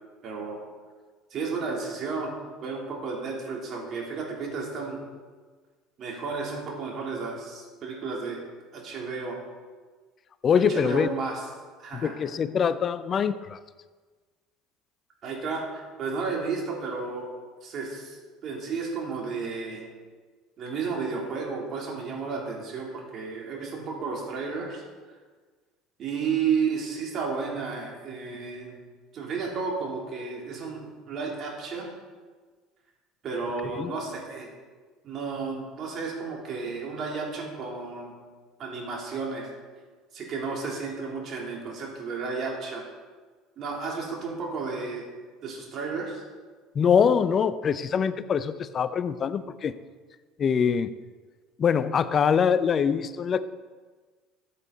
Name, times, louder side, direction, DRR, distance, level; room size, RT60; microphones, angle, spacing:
voice 1, 0.2-0.6 1.3-2.3 2.6-5.0 6.0-8.4 8.7-9.4 10.7-11.4 11.8-12.1 15.2-17.3 17.6-18.2 18.4-19.9 20.6-24.8 26.0-28.8 29.1-31.9 33.2-34.5 35.0-38.2 38.6-39.5 40.1-42.8 43.6-45.1 45.4-46.2, right 5 dB, 50° right, -2 dB, 3.4 m, -32 dB
voice 2, 10.4-11.1 11.9-13.6 33.6-33.9 46.7-49.7 50.4-50.9 51.6-53.4, left 7 dB, 40° left, 14 dB, 0.6 m, -24 dB
13.5 x 8.4 x 4.1 m, 1.4 s
hypercardioid pair, 70°, 0 cm